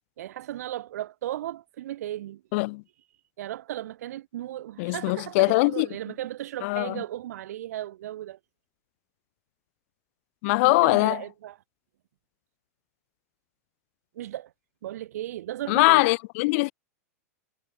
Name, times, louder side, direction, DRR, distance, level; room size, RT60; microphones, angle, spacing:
voice 1, 0.2-2.4 3.4-8.4 10.6-11.6 14.2-14.5 14.8-16.1, right 13 dB, 75° right, 2.3 m, -36 dB
voice 2, 2.5-2.8 4.8-5.9 6.6-7.0 10.4-11.2 15.7-16.7, left 26 dB, 55° left, 1.3 m, -22 dB
hypercardioid pair, 130°, 9 cm